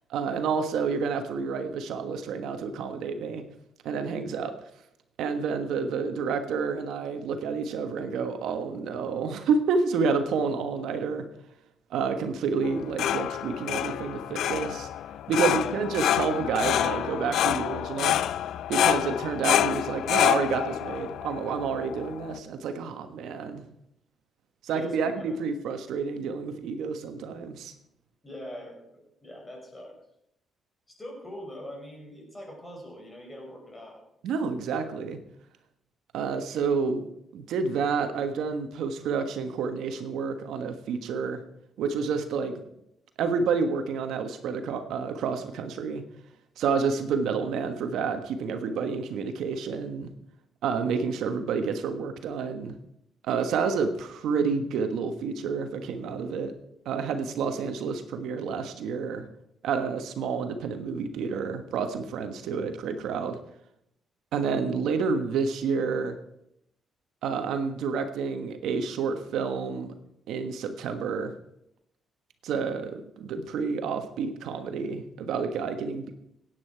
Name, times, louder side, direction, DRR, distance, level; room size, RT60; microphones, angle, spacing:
voice 1, 0.1-3.4 3.8-4.5 5.2-11.2 11.9-14.9 15.3-18.2 18.7-23.6 24.6-27.7 34.2-35.2 36.1-41.4 41.8-42.6 43.2-46.0 46.6-50.1 50.6-52.7 53.2-56.5 56.8-59.3 59.6-63.4 64.3-66.1 67.2-69.9 70.3-71.3 72.4-76.1, right 5 dB, 80° right, 7 dB, 1.4 m, -29 dB
sound 1, 12.6-22.4, left 11 dB, 80° left, 0.4 m, -27 dB
voice 2, 15.4-15.8 24.7-25.4 28.2-30.0 30.9-34.0, equal, 20° left, 0 dB, 5.2 m, -42 dB
16.0 x 9.5 x 4.7 m, 0.78 s
cardioid pair, 90°, 0 cm